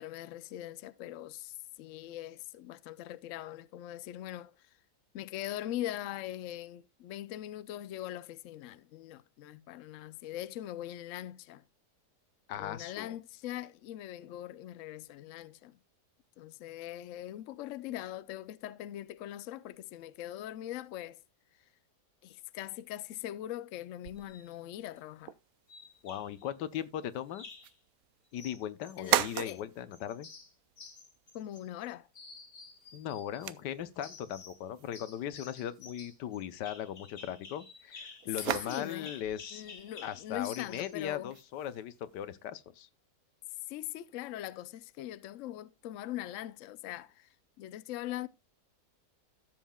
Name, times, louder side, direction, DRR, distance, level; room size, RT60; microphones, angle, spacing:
voice 1, 0.0-4.7 5.1-11.6 12.6-15.8 16.4-21.2 22.2-25.3 29.0-29.6 31.3-32.1 38.5-39.1 39.5-41.3 43.7-48.3, left 13 dB, 70° left, 0.7 m, -41 dB
voice 2, 12.5-13.2 26.0-27.4 28.3-30.3 32.9-39.7 40.0-42.9, left 10 dB, 85° left, 1.4 m, -38 dB
sound 1, 24.0-42.5, right 12 dB, 70° right, 0.9 m, -41 dB
sound 2, 24.2-24.5 25.7-26.5 27.3-27.8 28.4-29.6 29.9-31.9 32.1-33.5 34.0-34.6 34.9-41.0, left 4 dB, 45° left, 2.0 m, -51 dB
14.0 x 7.3 x 2.2 m
omnidirectional pair, 1.8 m